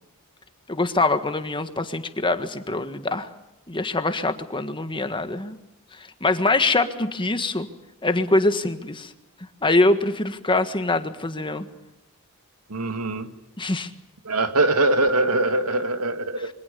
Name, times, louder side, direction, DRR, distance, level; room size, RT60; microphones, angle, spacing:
voice 1, 0.7-3.3 3.7-5.6 6.0-7.7 8.0-9.1 9.6-11.7 13.6-13.9, left 2 dB, 20° left, 9 dB, 1.6 m, -23 dB
voice 2, 12.7-13.3 14.2-16.5, right 2 dB, 90° right, 8 dB, 2.2 m, -22 dB
27.0 x 24.5 x 7.0 m, 0.95 s
head